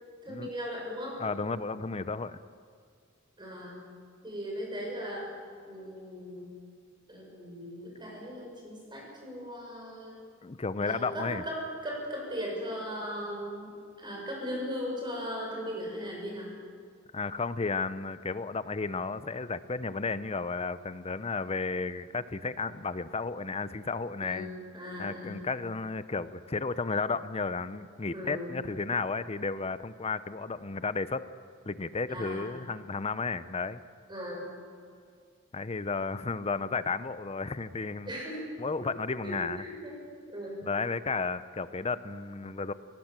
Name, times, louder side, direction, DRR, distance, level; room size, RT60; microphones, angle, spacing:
voice 1, 0.2-1.2 3.4-3.8 4.2-5.3 5.6-6.5 7.1-10.2 10.8-13.7 14.0-16.6 24.2-25.4 28.1-28.6 32.1-32.5 34.1-34.5 38.1-38.5 38.8-38.9 39.2-40.0 40.3-40.7, equal, 20° right, -2 dB, 7.0 m, -38 dB
voice 2, 1.2-2.4 10.4-11.4 17.1-24.5 25.0-31.3 31.6-33.8 35.5-38.1 38.6-39.6 40.6-42.7, left 4 dB, 30° left, 14 dB, 0.6 m, -33 dB
22.5 x 18.5 x 7.5 m, 2.1 s
head